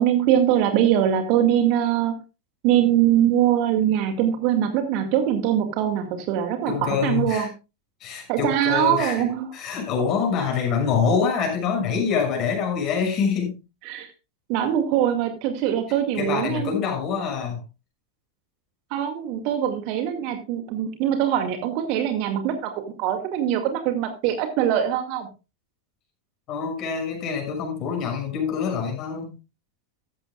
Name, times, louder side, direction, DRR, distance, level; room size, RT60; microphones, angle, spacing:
voice 1, 0.0-2.1 2.6-7.5 8.3-9.5 13.9-14.1 14.5-16.7 18.9-25.3, right 10 dB, 45° right, 7 dB, 2.1 m, -22 dB
voice 2, 6.7-7.5 8.0-9.3 9.5-13.6 16.2-17.6 26.5-29.3, left 6 dB, 35° left, 2 dB, 6.4 m, -25 dB
15.0 x 13.0 x 2.3 m, 0.29 s
figure-of-eight pair, 90°, 0 cm